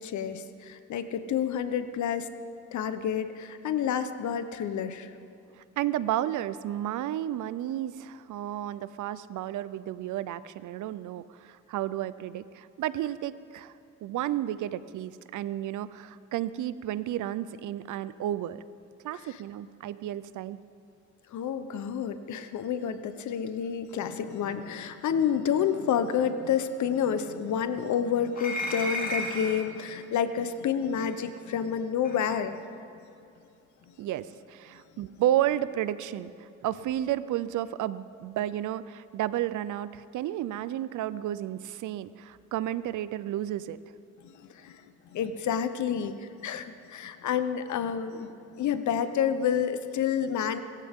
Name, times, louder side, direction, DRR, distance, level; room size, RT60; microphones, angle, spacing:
voice 1, 0.0-2.3 2.7-5.1 19.3-19.4 21.3-32.7 44.2-48.3 48.6-50.6, left 8 dB, 70° left, 11 dB, 1.0 m, -29 dB
voice 2, 5.6-13.7 14.0-18.6 19.0-20.6 34.0-43.8, right 12 dB, 80° right, 16 dB, 0.6 m, -32 dB
sound 1, 28.3-29.7 31.0-31.1 32.0-32.2, left 1 dB, 30° left, 3.1 m, -33 dB
25.0 x 14.5 x 3.7 m, 2.7 s
cardioid pair, 90°, 30 cm